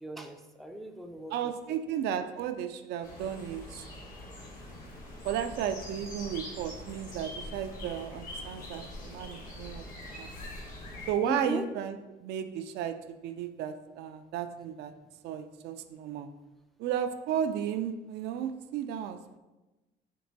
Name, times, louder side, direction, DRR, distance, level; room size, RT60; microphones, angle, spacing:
voice 1, 0.0-1.5 11.2-11.6, right 1 dB, ahead, 3 dB, 0.4 m, -38 dB
voice 2, 1.3-3.8 5.2-9.9 10.1-10.5 11.1-14.9 15.2-16.3 16.8-19.2, right 9 dB, 80° right, 8 dB, 0.4 m, -34 dB
sound 1, 3.0-11.1, left 1 dB, 55° left, 1.5 m, -43 dB
4.5 x 2.9 x 4.0 m, 1.1 s
cardioid pair, 110°, 17 cm